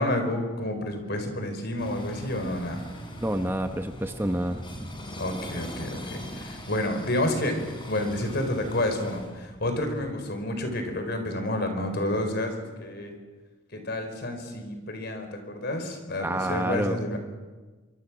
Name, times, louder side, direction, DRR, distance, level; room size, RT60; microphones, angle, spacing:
voice 1, 0.0-2.8 5.2-7.6 7.9-13.1 13.7-17.2, left 1 dB, 55° left, 6 dB, 4.6 m, -29 dB
sound 1, 1.8-10.1, equal, 25° left, 4.3 m, -41 dB
voice 2, 3.2-5.1 16.2-17.0, right 1 dB, 10° right, 7 dB, 0.9 m, -28 dB
25.5 x 24.5 x 6.2 m, 1.3 s
head